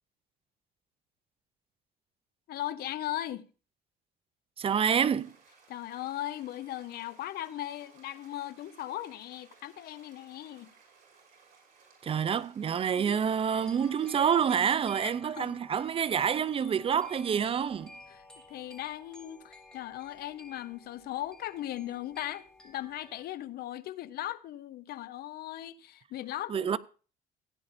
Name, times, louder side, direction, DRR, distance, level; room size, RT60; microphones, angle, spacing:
voice 1, 2.5-3.5 5.7-10.7 13.0-13.2 15.0-15.6 18.1-18.2 18.5-26.7, left 13 dB, 65° left, 0.7 m, -38 dB
voice 2, 4.6-5.3 12.0-17.9 26.5-26.8, right 7 dB, 35° right, 0.4 m, -27 dB
sound 1, 4.8-14.1, right 5 dB, 50° right, 5.5 m, -60 dB
sound 2, 13.5-23.2, left 2 dB, 5° left, 3.0 m, -53 dB
16.5 x 10.0 x 2.6 m
cardioid pair, 110°, 17 cm